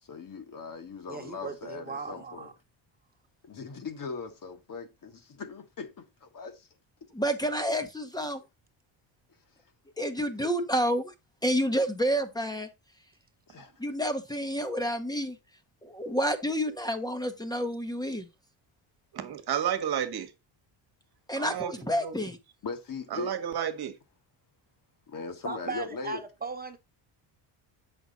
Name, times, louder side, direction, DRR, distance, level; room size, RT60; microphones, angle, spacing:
voice 1, 0.0-2.5 3.4-6.7 13.5-13.7 22.6-23.4 25.1-26.2, left 4 dB, 40° left, 1.6 m, -39 dB
voice 2, 1.1-2.5 25.4-26.8, right 4 dB, 20° right, 1.4 m, -37 dB
voice 3, 7.2-8.4 10.0-11.0 11.4-12.7 13.8-15.4 15.8-18.3 21.3-22.4, equal, 10° left, 1.0 m, -29 dB
voice 4, 19.1-20.3 21.3-22.1 23.1-23.9, right 9 dB, 50° right, 1.4 m, -31 dB
8.0 x 6.0 x 4.0 m
cardioid pair, 115°, 48 cm